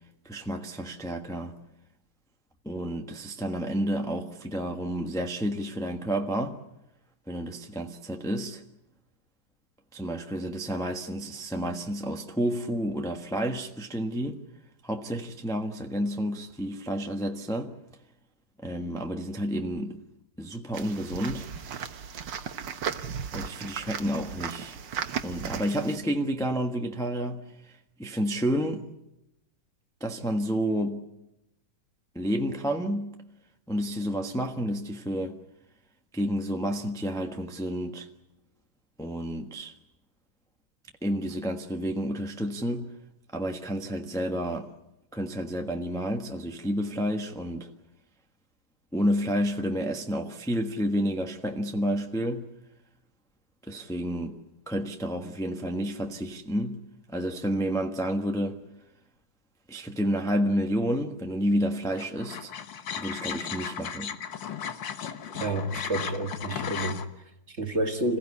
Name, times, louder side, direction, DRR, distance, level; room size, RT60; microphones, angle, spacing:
voice 1, 0.2-1.5 2.6-6.6 7.3-8.6 9.9-14.4 14.8-17.7 18.6-20.0 20.4-21.5 23.3-24.8 25.2-28.9 30.0-31.0 32.1-33.2 33.7-35.4 36.1-38.1 39.0-39.7 41.0-42.9 43.3-44.7 45.1-47.7 48.9-52.5 53.7-54.4 54.7-56.8 57.1-58.6 59.7-62.5 63.0-64.2, equal, ahead, 0.9 m, -30 dB
sound 1, 20.7-26.0, right 7 dB, 65° right, 1.7 m, -36 dB
sound 2, 62.0-67.0, left 8 dB, 65° left, 1.9 m, -36 dB
voice 2, 65.4-68.2, right 1 dB, 35° right, 2.0 m, -30 dB
27.0 x 16.0 x 9.7 m
omnidirectional pair, 2.2 m